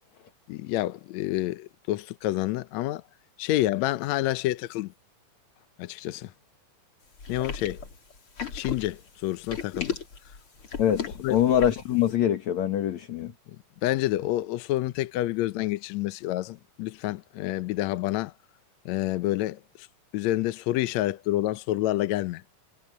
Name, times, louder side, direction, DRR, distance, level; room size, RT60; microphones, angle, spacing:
voice 1, 0.5-3.0 3.4-4.9 5.8-6.3 7.3-7.8 8.5-10.0 11.2-11.5 13.8-18.3 18.8-19.9 20.1-22.4, left 15 dB, 75° left, 1.6 m, -28 dB
sound 1, 7.2-11.9, left 6 dB, 40° left, 4.3 m, -35 dB
voice 2, 10.8-13.3, left 10 dB, 60° left, 2.7 m, -24 dB
omnidirectional pair, 3.9 m